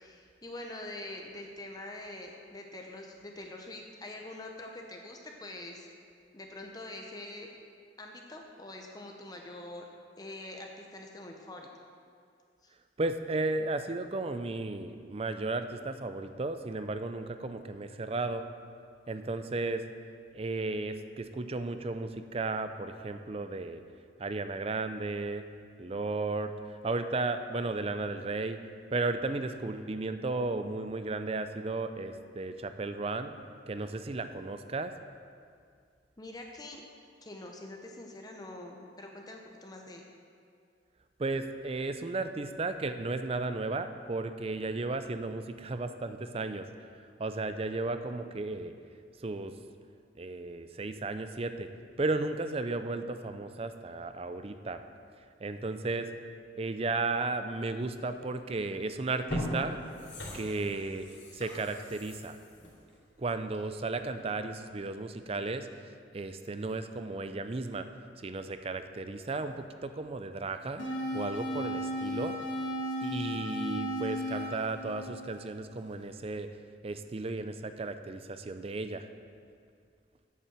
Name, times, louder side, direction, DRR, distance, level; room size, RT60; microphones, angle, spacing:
voice 1, 0.0-5.9 6.3-7.5 8.0-9.8 10.2-11.7 12.6-12.7 36.2-36.8 37.2-40.0, left 1 dB, 20° left, 1 dB, 0.8 m, -45 dB
voice 2, 13.0-18.4 19.1-19.8 20.3-23.8 24.2-25.4 25.8-26.5 26.8-28.6 28.9-33.3 33.7-34.9 41.2-46.7 47.2-48.7 49.2-49.5 50.2-51.7 52.0-54.8 55.4-56.1 56.6-59.8 60.3-61.1 61.3-62.4 63.2-65.7 66.1-67.9 68.2-72.4 73.0-76.5 76.8-79.1, right 3 dB, 30° right, 9 dB, 0.5 m, -34 dB
sound 1, 58.5-58.7 59.1-63.8 64.2-64.3, equal, 70° left, 2.9 m, -40 dB
sound 2, 70.8-75.8, equal, 85° left, 1.4 m, -35 dB
8.3 x 7.2 x 7.3 m, 2.2 s
head